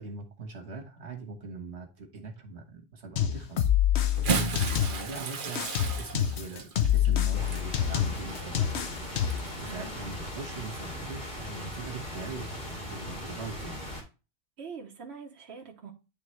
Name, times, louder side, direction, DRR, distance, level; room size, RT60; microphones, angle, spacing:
voice 1, 0.0-3.7 4.3-8.7 9.6-13.9, right 4 dB, 90° right, 1.6 m, -41 dB
sound 1, 3.2-5.2 5.6-9.5, left 10 dB, 80° left, 1.0 m, -27 dB
Bathtub (filling or washing) / Splash splatter, 4.0-9.7 10.6-10.8 12.2-12.3, right 5 dB, 55° right, 1.0 m, -35 dB
sound 2, 7.3-14.0, left 1 dB, 65° left, 2.6 m, -39 dB
voice 2, 14.6-15.9, right 5 dB, 75° right, 1.2 m, -43 dB
10.0 x 3.5 x 3.2 m
omnidirectional pair, 1.1 m